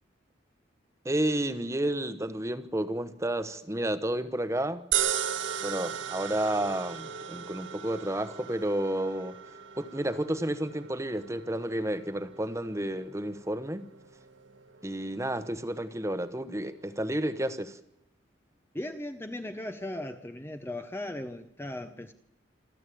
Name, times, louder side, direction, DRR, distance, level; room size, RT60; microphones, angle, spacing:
voice 1, 1.0-4.9 5.6-9.4 9.7-13.9 14.8-17.8, right 1 dB, 15° right, 1.1 m, -31 dB
sound 1, 4.9-17.3, right 9 dB, 80° right, 1.4 m, -37 dB
voice 2, 18.7-22.1, left 1 dB, 10° left, 0.8 m, -37 dB
27.0 x 13.0 x 8.5 m
head